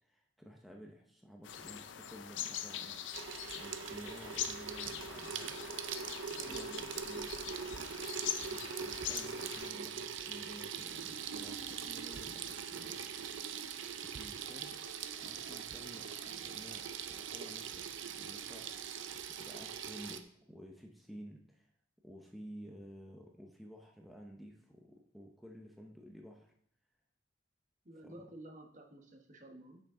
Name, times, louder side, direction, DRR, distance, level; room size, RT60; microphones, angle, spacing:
voice 1, 0.0-6.0 6.4-7.4 8.5-14.8 15.2-20.2 20.5-21.7 22.0-26.5 28.0-28.2, equal, ahead, 0 dB, 0.7 m, -53 dB
sound 1, 1.4-9.7, left 10 dB, 75° left, 0.5 m, -43 dB
Water tap faucet / Sink (filling or washing), 3.1-20.2, right 7 dB, 80° right, 0.6 m, -42 dB
voice 2, 6.3-6.9 27.8-29.8, right 1 dB, 40° right, 3 dB, 1.1 m, -52 dB
8.2 x 6.3 x 3.6 m, 0.66 s
head